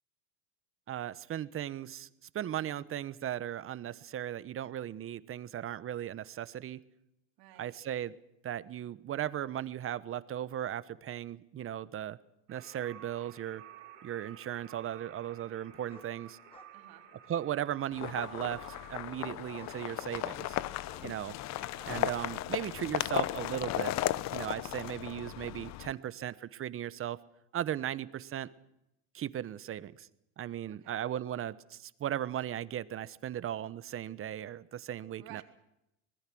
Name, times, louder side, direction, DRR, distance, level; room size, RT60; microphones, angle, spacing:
voice 1, 0.9-2.1 2.3-6.8 7.6-8.1 8.4-12.2 12.5-13.6 14.0-16.4 17.3-20.6 21.0-21.4 21.9-23.9 24.3-27.2 27.5-28.5 29.1-30.1 30.4-35.4, right 11 dB, 35° right, 15 dB, 1.1 m, -37 dB
voice 2, 7.4-7.8 16.7-17.1 21.6-21.9 30.7-31.0 35.2-35.4, right 15 dB, 60° right, 4 dB, 3.8 m, -54 dB
sound 1, 12.5-19.3, right 9 dB, 85° right, 5.7 m, -53 dB
sound 2, 13.8-13.9 15.9-16.1 16.5-16.7 17.1-17.6 18.4-18.5 19.3-19.8 20.1-20.5 20.9-21.1 21.8-22.0 22.5-22.6, left 2 dB, 15° left, 4.0 m, -55 dB
sound 3, 17.9-25.9, left 15 dB, 40° left, 0.8 m, -36 dB
25.5 x 19.5 x 6.3 m, 0.85 s
supercardioid pair, 115°, 40 cm